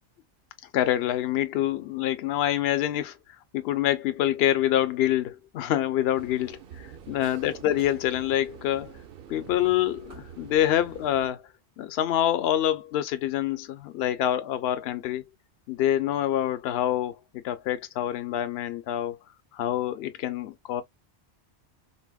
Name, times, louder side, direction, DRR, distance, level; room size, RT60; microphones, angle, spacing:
voice 1, 0.7-3.2 3.5-6.6 7.1-8.9 9.3-11.4 11.8-15.2 15.7-19.2 19.5-20.8, left 12 dB, 65° left, 0.8 m, -26 dB
sound 1, 6.2-11.3, right 8 dB, 60° right, 0.7 m, -46 dB
3.9 x 2.0 x 2.2 m
omnidirectional pair, 1.2 m